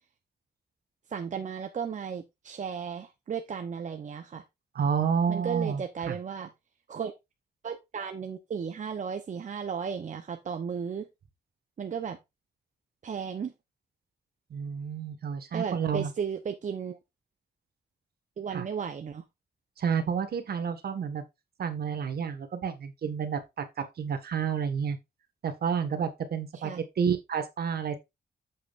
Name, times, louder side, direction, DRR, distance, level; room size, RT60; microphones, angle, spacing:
voice 1, 1.1-4.4 5.3-6.5 6.9-7.1 7.6-11.0 11.8-12.2 13.0-13.5 15.5-17.0 18.4-19.2 26.5-26.8, right 7 dB, 45° right, 0.9 m, -34 dB
voice 2, 4.7-5.8 6.1-6.2 14.5-16.1 18.5-18.7 19.8-21.2 21.6-23.6 24.0-25.0 25.4-26.7 27.0-28.0, right 7 dB, 65° right, 1.7 m, -30 dB
8.8 x 7.9 x 2.6 m
wide cardioid pair, 120°, 17 cm